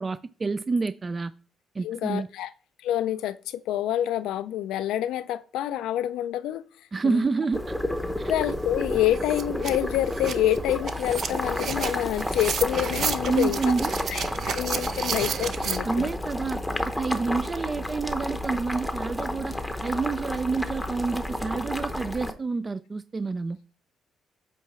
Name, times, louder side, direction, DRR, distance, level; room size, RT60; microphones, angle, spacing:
voice 1, 0.0-1.3 1.7-2.3 6.9-7.8 8.2-8.3 13.3-14.1 15.8-19.5 19.8-23.6, right 4 dB, 30° right, 0.3 m, -28 dB
voice 2, 1.8-2.5 2.8-6.6 7.0-7.2 8.3-13.7 14.1-16.1, left 12 dB, 90° left, 0.3 m, -27 dB
Boiling, 7.5-22.3, left 1 dB, 5° left, 0.8 m, -31 dB
sound 1, 8.5-8.6 8.9-15.8, right 6 dB, 60° right, 0.6 m, -33 dB
8.2 x 2.9 x 5.6 m
cardioid pair, 90°, 0 cm